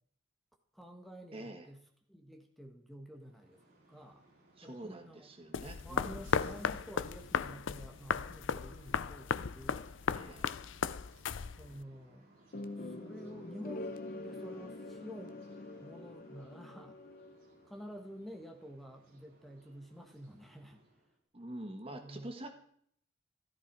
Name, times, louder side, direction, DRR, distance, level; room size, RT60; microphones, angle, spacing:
voice 1, 0.7-1.8 2.1-3.6 3.9-4.2 4.6-5.3 5.8-9.9 11.5-12.3 12.8-17.0 17.6-20.8 21.9-22.3, equal, ahead, 3 dB, 1.7 m, -50 dB
voice 2, 1.3-1.7 4.6-6.3 10.1-10.5 21.3-22.5, right 1 dB, 30° right, 5 dB, 1.5 m, -46 dB
sound 1, 3.1-21.2, right 2 dB, 45° right, 7.7 m, -64 dB
sound 2, 5.5-11.8, left 6 dB, 65° left, 0.5 m, -36 dB
sound 3, 12.5-17.6, left 2 dB, 45° left, 0.8 m, -45 dB
16.0 x 13.5 x 4.7 m, 0.65 s
head